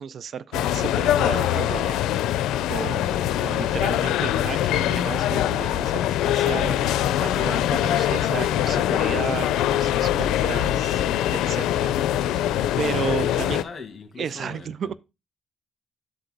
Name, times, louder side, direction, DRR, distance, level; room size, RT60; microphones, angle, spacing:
voice 1, 0.0-11.1 11.3-13.6 14.2-14.9, right 7 dB, 55° right, 0.5 m, -33 dB
sound 1, 0.5-13.6, left 12 dB, 90° left, 0.5 m, -23 dB
voice 2, 13.2-14.9, left 5 dB, 40° left, 2.4 m, -40 dB
12.0 x 4.5 x 3.9 m
cardioid pair, 90°, 0 cm